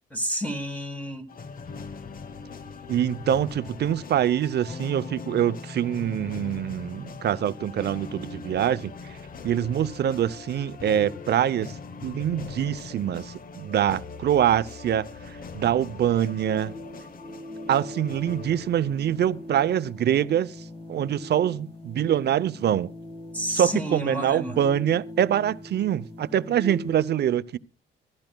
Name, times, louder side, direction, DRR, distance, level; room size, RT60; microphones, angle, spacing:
voice 1, 0.1-1.3 23.3-24.6, equal, 5° left, 1.8 m, -30 dB
sound 1, 1.3-19.9, left 4 dB, 45° left, 0.9 m, -41 dB
voice 2, 2.9-8.9 9.4-11.7 12.0-15.1 15.5-16.7 17.7-20.5 20.9-22.9 23.5-27.6, right 10 dB, 55° right, 0.7 m, -24 dB
sound 2, 16.4-27.0, left 1 dB, 30° left, 1.9 m, -41 dB
24.5 x 12.0 x 2.3 m
cardioid pair, 90°, 20 cm